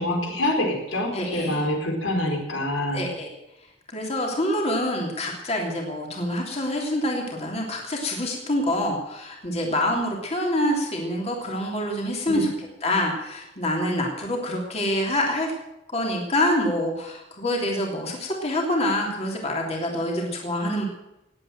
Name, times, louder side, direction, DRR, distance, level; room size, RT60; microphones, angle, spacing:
voice 1, 0.0-3.1 12.3-12.4, left 1 dB, 90° left, 2 dB, 4.2 m, -26 dB
voice 2, 1.1-1.7 2.9-3.3 3.9-12.5 12.8-15.5 15.9-20.9, left 1 dB, 35° left, 0 dB, 3.1 m, -26 dB
19.5 x 8.8 x 7.7 m, 0.93 s
head